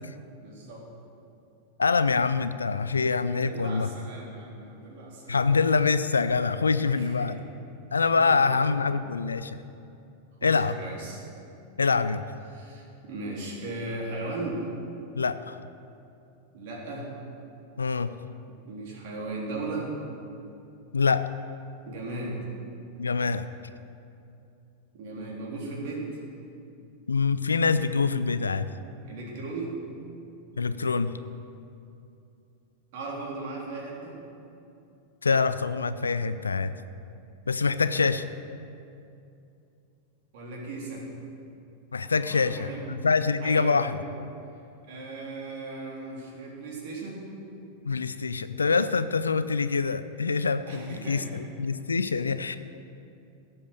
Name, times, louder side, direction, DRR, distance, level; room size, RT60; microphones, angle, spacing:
voice 1, 0.4-0.8 2.9-5.5 6.9-7.5 8.2-8.8 10.4-11.2 12.5-14.7 16.5-17.1 18.7-19.9 21.9-22.4 24.9-26.2 29.0-29.8 32.9-34.2 37.6-38.0 40.3-41.0 42.2-42.8 43.4-43.9 44.8-47.3 50.7-51.5, right 2 dB, 50° right, -3 dB, 3.5 m, -37 dB
voice 2, 1.8-3.9 5.3-7.4 7.9-9.6 10.4-10.7 11.8-12.2 15.2-15.6 17.8-18.2 20.9-21.3 23.0-23.5 27.1-28.7 30.5-31.2 35.2-36.7 37.5-38.2 41.9-44.0 47.8-52.6, left 4 dB, 75° left, 13 dB, 0.4 m, -25 dB
16.5 x 7.2 x 6.6 m, 2.6 s
figure-of-eight pair, 90°, 0 cm